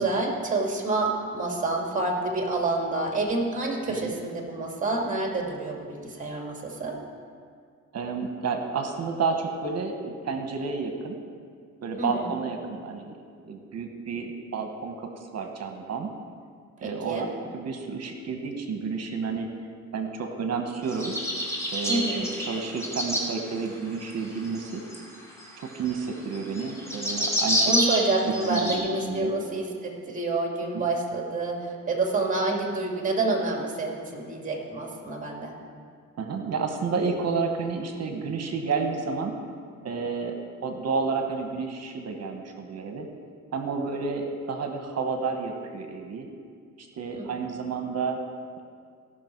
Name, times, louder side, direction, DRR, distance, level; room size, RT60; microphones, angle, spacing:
voice 1, 0.0-7.0 12.0-12.3 16.8-17.3 21.9-22.2 27.7-35.5 47.1-47.3, right 2 dB, 25° right, 0 dB, 2.3 m, -28 dB
voice 2, 7.9-11.2 11.8-13.2 13.4-16.1 16.8-17.3 17.5-19.5 19.9-21.1 21.7-24.8 25.6-27.7 28.5-29.3 30.7-30.8 36.2-39.3 39.8-43.1 43.5-46.3 46.8-48.2, right 5 dB, 55° right, 4 dB, 1.3 m, -30 dB
sound 1, 20.9-23.3 24.0-28.8, equal, 10° left, 2.8 m, -28 dB
17.0 x 6.3 x 4.6 m, 2.1 s
cardioid pair, 90°, 30 cm